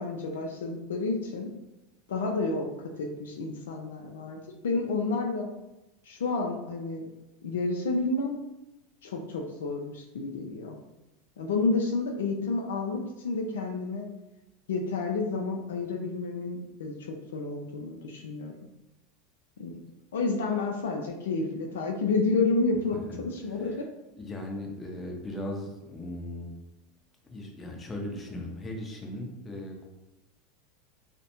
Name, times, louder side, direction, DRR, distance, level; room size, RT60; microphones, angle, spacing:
voice 1, 0.0-1.5 2.1-2.7 2.9-4.4 4.6-5.5 6.1-7.1 7.4-8.4 9.0-10.8 11.4-14.1 14.7-16.9 17.3-18.5 19.6-19.7 20.1-23.9, left 3 dB, 80° left, 2 dB, 0.3 m, -30 dB
voice 2, 23.5-23.8 24.2-26.6 27.3-29.8, left 1 dB, 20° left, 0 dB, 0.6 m, -38 dB
2.5 x 2.1 x 2.8 m, 0.95 s
hypercardioid pair, 90°, 0 cm